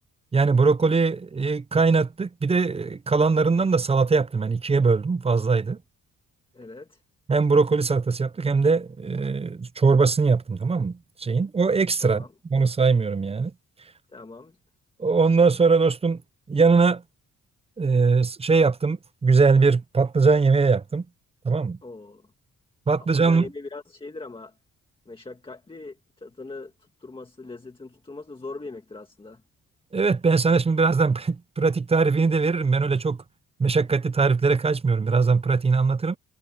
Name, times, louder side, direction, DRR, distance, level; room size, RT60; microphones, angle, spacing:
voice 1, 0.3-5.8 7.3-12.2 12.5-13.5 15.0-16.2 16.5-17.0 17.8-21.0 21.4-21.8 22.9-23.5 29.9-33.2 33.6-36.2, right 4 dB, 20° right, 0.5 m, -21 dB
voice 2, 6.5-7.0 12.0-12.3 14.1-14.6 21.8-22.3 23.1-24.6 25.1-29.4, left 3 dB, 15° left, 1.8 m, -41 dB
wide cardioid pair, 165°, 32 cm